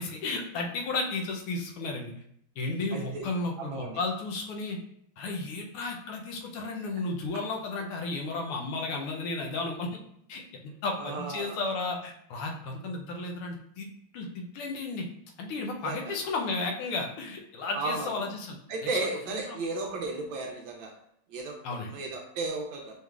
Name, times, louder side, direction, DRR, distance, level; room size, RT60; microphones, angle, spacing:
voice 1, 0.0-2.1 2.6-4.8 5.2-10.0 10.3-15.1 15.4-18.6 19.3-19.4 21.6-21.9, left 3 dB, 85° left, 1 dB, 1.7 m, -33 dB
voice 2, 2.9-3.2 3.6-4.0 11.0-11.6 15.8-16.1 17.7-18.2 18.7-20.9 21.3-22.9, right 3 dB, 75° right, 1 dB, 1.2 m, -34 dB
5.5 x 3.2 x 2.4 m, 0.71 s
omnidirectional pair, 2.4 m